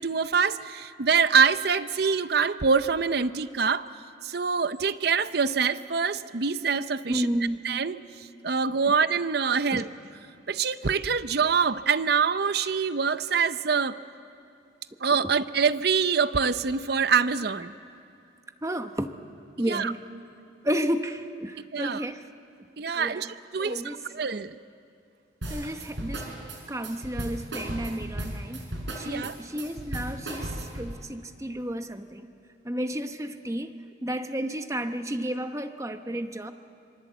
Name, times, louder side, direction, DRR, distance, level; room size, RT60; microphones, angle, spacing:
voice 1, 0.0-3.9 4.2-7.3 7.6-8.0 8.4-9.9 10.5-14.0 15.0-17.7 19.6-19.9 21.7-22.0 22.8-24.6 29.0-29.4, right 5 dB, 55° right, 13 dB, 0.7 m, -25 dB
voice 2, 7.1-7.6 9.7-9.8 18.6-19.1 19.6-20.0 20.6-22.2 22.9-23.3 23.6-24.2 25.5-26.3 26.7-28.7 29.0-32.3 32.6-33.7 34.0-36.5, equal, 15° right, 7 dB, 0.9 m, -32 dB
sound 1, 25.4-30.9, right 1 dB, 70° right, 5.2 m, -35 dB
26.5 x 25.0 x 8.1 m, 2.5 s
head